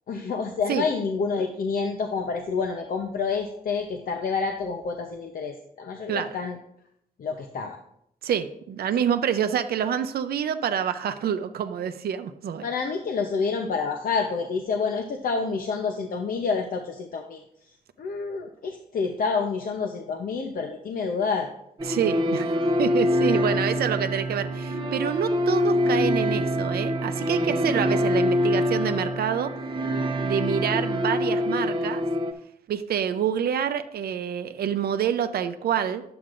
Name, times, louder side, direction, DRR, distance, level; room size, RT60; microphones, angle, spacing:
voice 1, 0.1-6.6 7.2-7.8 12.6-17.4 18.0-21.5, left 5 dB, 70° left, 4 dB, 0.7 m, -28 dB
voice 2, 8.2-12.7 21.8-22.5 22.8-29.5 30.2-32.0 32.7-36.0, right 8 dB, 85° right, 10 dB, 0.6 m, -27 dB
sound 1, 21.8-32.3, equal, 30° right, 0.8 m, -25 dB
10.5 x 7.8 x 2.5 m, 0.74 s
wide cardioid pair, 120°, 16 cm